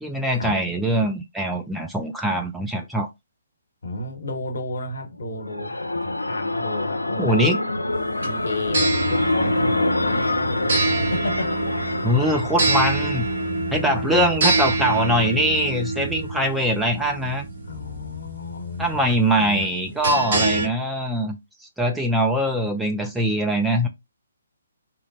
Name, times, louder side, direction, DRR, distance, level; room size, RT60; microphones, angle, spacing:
voice 1, 0.0-3.1 7.2-7.6 12.0-13.3 13.7-17.4 18.8-21.4 21.8-23.9, equal, 5° right, 0.3 m, -22 dB
voice 2, 3.8-7.4 8.2-11.8 12.6-12.7 13.4-14.4 17.6-19.7, left 2 dB, 60° left, 1.0 m, -33 dB
sound 1, 5.2-14.0, left 2 dB, 90° left, 0.4 m, -26 dB
sound 2, 7.9-20.7, right 2 dB, 50° right, 0.8 m, -26 dB
2.8 x 2.1 x 2.6 m
figure-of-eight pair, 135°, 0 cm